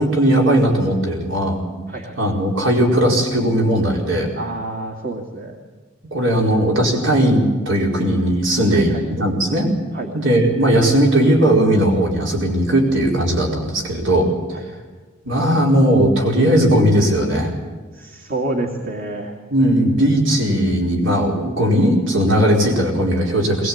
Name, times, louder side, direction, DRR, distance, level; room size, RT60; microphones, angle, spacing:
voice 1, 0.0-1.6 2.2-4.3 6.1-9.7 10.1-14.3 15.2-17.5 19.5-23.7, right 1 dB, 75° right, 0 dB, 4.8 m, -17 dB
voice 2, 4.3-5.6 8.7-9.0 9.9-10.1 14.5-14.6 17.9-19.3, right 2 dB, 45° right, 2 dB, 2.4 m, -28 dB
21.0 x 20.5 x 8.7 m, 1.4 s
head